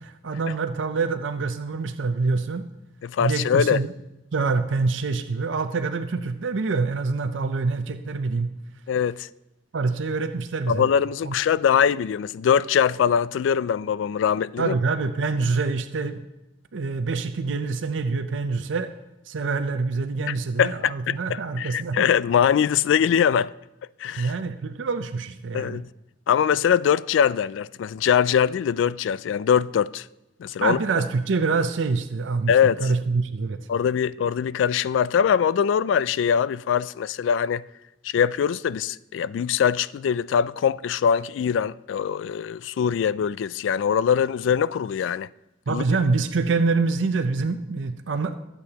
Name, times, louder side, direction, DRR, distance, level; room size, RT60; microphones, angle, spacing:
voice 1, 0.0-2.7 3.2-3.9 4.3-8.5 9.7-10.9 11.2-11.3 14.6-16.2 16.7-18.9 19.3-22.1 24.2-25.8 30.6-33.6 45.7-48.3, right 4 dB, 85° right, 0.6 m, -26 dB
voice 2, 3.0-3.8 8.9-9.3 10.7-14.7 20.3-23.5 24.0-24.3 25.5-25.9 26.3-30.1 30.4-30.8 32.5-32.9 33.7-37.6 38.0-45.3 45.7-45.8, left 8 dB, 85° left, 0.3 m, -22 dB
21.5 x 8.3 x 2.9 m
head